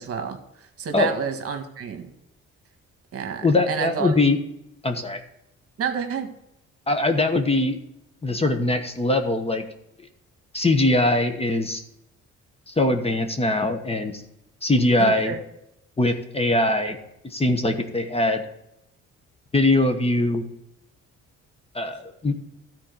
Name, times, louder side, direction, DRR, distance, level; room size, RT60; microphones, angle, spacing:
voice 1, 0.0-2.1 3.1-4.1 5.8-6.3 15.0-15.4, right 7 dB, 50° right, 6 dB, 1.6 m, -29 dB
voice 2, 3.4-4.4 4.8-5.2 6.9-7.8 8.2-9.6 10.5-11.8 12.7-14.2 14.6-15.3 16.0-17.0 17.3-18.4 19.5-20.4 21.7-22.5, left 2 dB, 20° left, 6 dB, 1.2 m, -22 dB
13.0 x 4.5 x 6.8 m, 0.85 s
cardioid pair, 105°, 29 cm